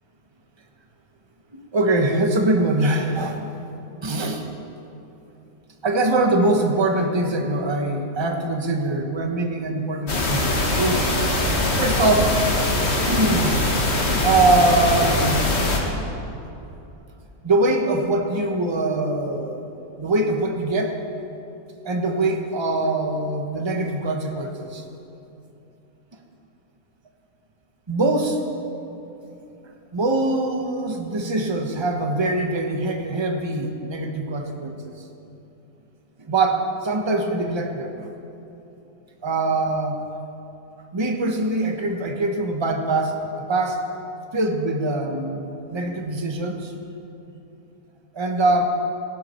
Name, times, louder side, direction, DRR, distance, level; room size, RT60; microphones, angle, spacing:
voice 1, 1.5-3.4 4.0-4.5 5.8-11.1 11.8-12.5 13.0-13.6 14.2-15.4 17.4-19.6 20.0-21.0 21.8-24.8 27.9-28.4 29.9-34.7 36.2-37.9 39.2-40.0 40.9-43.8 44.3-46.7 48.1-48.6, right 2 dB, 20° right, 3 dB, 0.7 m, -23 dB
sound 1, 10.1-15.8, left 1 dB, 40° left, 1.7 m, -22 dB
15.5 x 11.5 x 4.3 m, 2.8 s
omnidirectional pair, 1.7 m